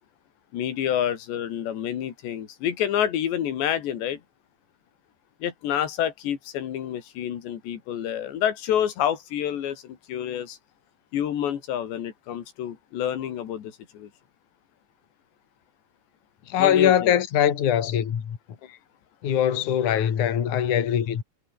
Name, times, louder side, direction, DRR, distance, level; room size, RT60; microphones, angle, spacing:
voice 1, 0.5-4.2 5.4-10.6 11.1-14.1 16.6-17.1, left 10 dB, 90° left, 4.7 m, -28 dB
voice 2, 16.5-18.4 19.2-21.2, left 9 dB, 50° left, 3.6 m, -22 dB
omnidirectional pair, 4.9 m